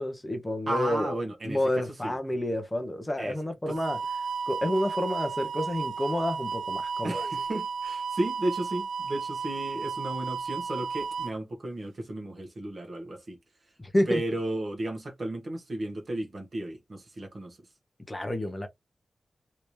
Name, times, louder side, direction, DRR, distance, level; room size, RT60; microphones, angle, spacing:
voice 1, 0.0-1.2 1.4-4.0 4.5-7.3 13.8-14.2 18.1-18.7, left 1 dB, 15° left, 0.6 m, -29 dB
voice 2, 0.7-2.1 3.2-3.4 3.7-3.8 7.0-13.4 14.1-17.6, right 1 dB, 45° right, 1.2 m, -34 dB
sound 1, 3.7-11.3, right 5 dB, 90° right, 0.3 m, -33 dB
3.3 x 2.7 x 3.0 m
wide cardioid pair, 155°, 0 cm